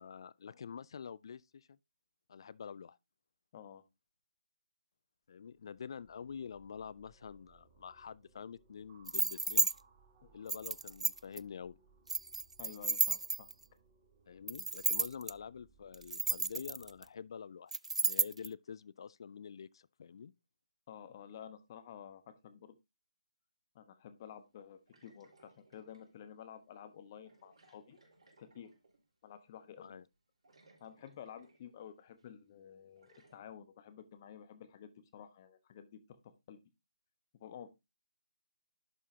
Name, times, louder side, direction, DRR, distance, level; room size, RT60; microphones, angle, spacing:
voice 1, 0.0-1.8 2.3-3.0 5.3-9.7 10.3-11.8 14.3-17.7 18.0-20.3 29.8-30.0, left 7 dB, 50° left, 0.4 m, -47 dB
voice 2, 3.5-3.8 10.2-10.4 12.6-13.5 20.9-22.8 23.7-28.0 28.4-28.7 29.2-29.9 30.8-36.2 36.5-36.6 37.3-37.7, left 9 dB, 30° left, 1.0 m, -52 dB
sound 1, 5.6-17.1, right 5 dB, 30° right, 5.3 m, -67 dB
sound 2, 9.1-9.7 10.5-11.4 12.1-13.6 14.5-15.3 15.9-17.0 17.7-18.5, right 3 dB, 85° right, 0.3 m, -32 dB
sound 3, 24.9-26.2 27.2-29.1 30.1-30.2 30.4-31.8 32.2-32.3 33.0-33.4, right 2 dB, 65° right, 4.1 m, -66 dB
11.0 x 5.5 x 2.8 m
figure-of-eight pair, 150°, 3 cm